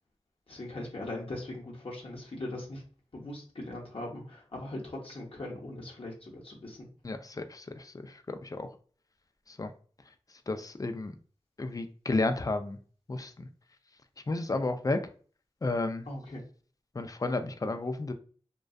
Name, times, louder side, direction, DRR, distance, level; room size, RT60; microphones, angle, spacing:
voice 1, 0.5-2.8 3.1-6.9 16.1-16.4, left 1 dB, 55° left, -2 dB, 0.7 m, -40 dB
voice 2, 7.0-7.9 8.3-8.7 9.6-9.7 10.5-11.1 11.6-12.8 13.1-13.5 14.3-15.0 15.6-16.0 17.0-18.1, left 2 dB, 30° left, 7 dB, 0.4 m, -32 dB
2.5 x 2.2 x 2.2 m, 0.42 s
cardioid pair, 40°, 11 cm